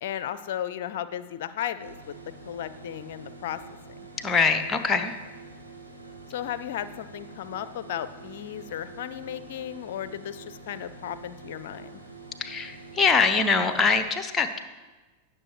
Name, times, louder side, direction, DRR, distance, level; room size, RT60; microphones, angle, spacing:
voice 1, 0.0-3.6 6.3-12.0, left 10 dB, 55° left, 14 dB, 0.5 m, -35 dB
sound 1, 1.8-14.0, right 3 dB, 85° right, 1.5 m, -46 dB
voice 2, 4.2-5.2 12.4-14.6, left 5 dB, 20° left, 9 dB, 0.8 m, -23 dB
17.5 x 6.5 x 3.1 m, 1.2 s
figure-of-eight pair, 90°, 0 cm